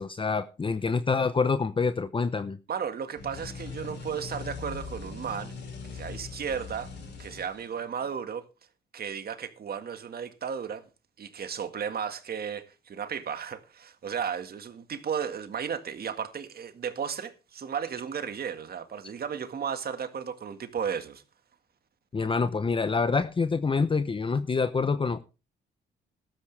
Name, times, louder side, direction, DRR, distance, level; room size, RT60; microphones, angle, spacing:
voice 1, 0.0-2.6 22.1-25.2, left 4 dB, 25° left, 0.8 m, -26 dB
voice 2, 2.7-5.5 5.9-6.9 7.2-8.4 8.9-10.8 11.2-21.2, right 7 dB, 50° right, 1.8 m, -34 dB
sound 1, 3.1-8.0, left 5 dB, 60° left, 7.3 m, -41 dB
13.0 x 13.0 x 3.4 m
cardioid pair, 90°, 20 cm